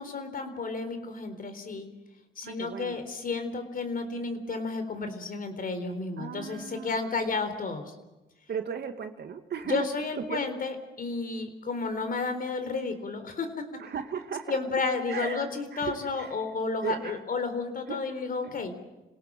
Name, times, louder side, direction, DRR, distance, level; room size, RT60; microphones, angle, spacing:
voice 1, 0.0-1.9 2.4-7.9 9.6-13.8 14.5-18.7, left 4 dB, 45° left, 8 dB, 4.0 m, -32 dB
voice 2, 2.4-3.0 6.2-7.2 8.5-9.9 10.3-10.4 13.8-14.6 15.1-16.3 16.8-17.1 17.9-18.0 18.4-18.6, right 7 dB, 55° right, 7 dB, 2.3 m, -36 dB
27.0 x 17.5 x 7.8 m, 1.0 s
cardioid pair, 90°, 20 cm